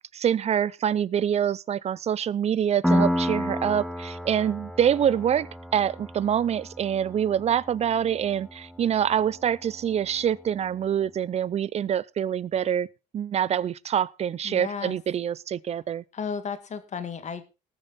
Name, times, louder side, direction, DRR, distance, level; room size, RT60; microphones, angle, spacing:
voice 1, 0.1-12.9 13.1-16.0, right 9 dB, 40° right, 0.6 m, -25 dB
Piano, 2.8-10.2, left 1 dB, ahead, 1.0 m, -31 dB
voice 2, 14.4-15.0 16.1-17.4, left 6 dB, 45° left, 1.9 m, -33 dB
19.5 x 7.0 x 4.1 m
cardioid pair, 110°, 17 cm